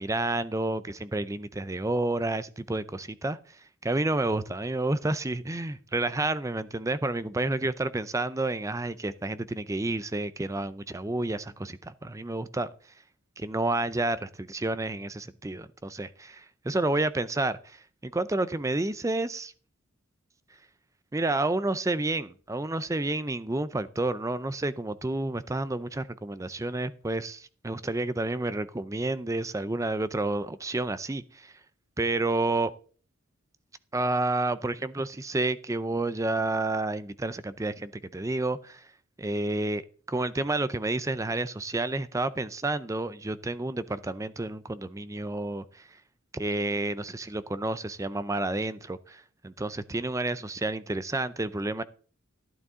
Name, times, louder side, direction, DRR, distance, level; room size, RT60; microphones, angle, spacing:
voice 1, 0.0-3.4 3.8-12.7 13.4-19.5 21.1-31.5 32.0-32.7 33.9-38.9 39.2-39.8 40.1-45.9 46.3-51.8, right 2 dB, 15° right, 0.5 m, -30 dB
12.0 x 11.0 x 3.7 m
head